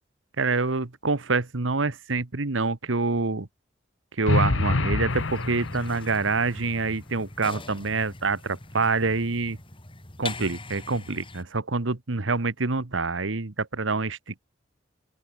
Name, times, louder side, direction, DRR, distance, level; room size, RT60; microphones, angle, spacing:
voice 1, 0.4-3.5 4.2-9.6 10.2-14.5, right 3 dB, 85° right, 1.4 m, -26 dB
sound 1, 4.3-6.3, left 2 dB, 85° left, 1.1 m, -26 dB
sound 2, 5.1-11.4, left 2 dB, 30° left, 3.6 m, -41 dB
open air
head